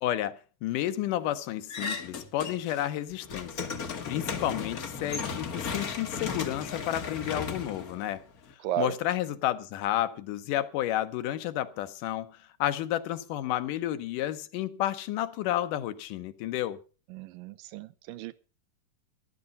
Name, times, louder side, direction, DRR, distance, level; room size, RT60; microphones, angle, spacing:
voice 1, 0.0-3.7 4.1-8.2 8.8-16.8, left 13 dB, 80° left, 2.4 m, -31 dB
sound 1, 1.7-2.8 3.1-8.5, left 5 dB, 65° left, 0.9 m, -35 dB
voice 2, 17.1-18.4, right 13 dB, 85° right, 2.5 m, -34 dB
13.5 x 11.5 x 5.3 m
omnidirectional pair, 3.9 m